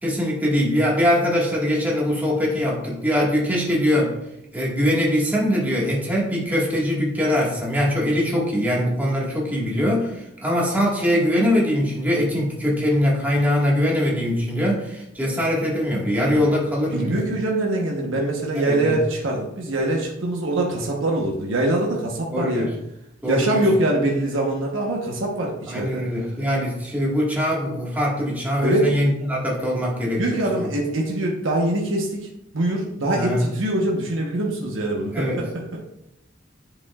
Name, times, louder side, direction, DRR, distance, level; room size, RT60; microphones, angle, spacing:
voice 1, 0.0-4.2 4.5-17.2 18.6-19.0 22.3-22.7 23.2-23.7 25.7-30.7 33.1-33.5 35.1-35.4, equal, 10° right, -4 dB, 1.6 m, -22 dB
voice 2, 16.9-22.7 23.3-26.1 28.6-28.9 30.2-32.2 32.5-35.8, right 1 dB, 85° right, -1 dB, 1.1 m, -23 dB
10.0 x 5.2 x 2.4 m, 0.84 s
head